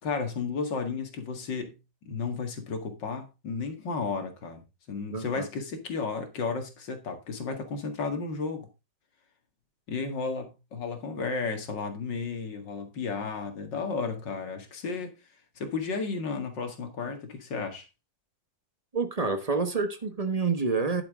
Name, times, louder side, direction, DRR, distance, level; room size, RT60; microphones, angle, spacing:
voice 1, 0.0-1.8 2.1-4.6 4.9-8.7 9.9-15.1 15.6-17.9, left 4 dB, 70° left, 2.6 m, -33 dB
voice 2, 5.1-5.5 18.9-21.0, right 4 dB, 25° right, 1.1 m, -28 dB
10.5 x 8.7 x 3.7 m
omnidirectional pair, 2.0 m